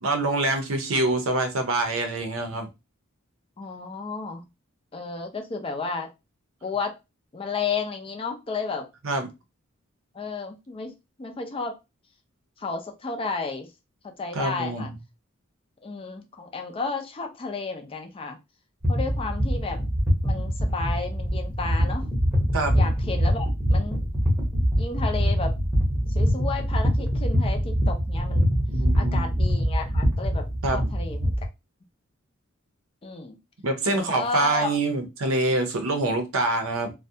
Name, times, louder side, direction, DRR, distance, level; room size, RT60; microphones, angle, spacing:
voice 1, 0.0-2.7 9.0-9.3 14.3-14.9 22.5-22.8 28.7-29.3 30.6-30.9 33.6-36.9, right 2 dB, 75° right, 7 dB, 0.6 m, -25 dB
voice 2, 3.6-4.4 4.9-6.1 6.6-6.9 7.3-8.9 10.1-11.8 12.6-13.7 14.0-14.9 15.8-18.4 18.9-19.9 20.2-22.1 22.7-24.0 24.8-25.5 26.1-28.5 29.0-30.5 30.7-31.3 33.0-33.4 33.9-34.8, left 4 dB, 25° left, 4 dB, 0.4 m, -32 dB
sound 1, 18.8-31.5, equal, 10° right, 0.8 m, -24 dB
2.3 x 2.1 x 2.6 m, 0.25 s
head